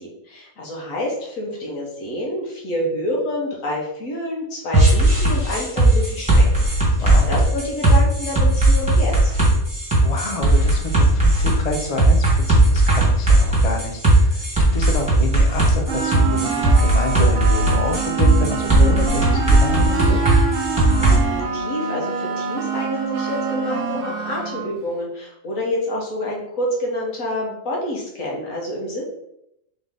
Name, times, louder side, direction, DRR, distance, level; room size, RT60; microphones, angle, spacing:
voice 1, 0.0-6.7 6.9-9.3 20.8-29.0, left 1 dB, 75° left, -2 dB, 1.6 m, -28 dB
sound 1, 4.7-21.2, right 2 dB, 5° right, 1.6 m, -16 dB
voice 2, 7.0-7.3 10.0-14.4 14.7-20.2, left 2 dB, 45° left, 3 dB, 0.5 m, -28 dB
sound 2, 15.9-24.7, right 5 dB, 55° right, 0.7 m, -26 dB
4.0 x 3.5 x 3.6 m, 0.79 s
omnidirectional pair, 1.4 m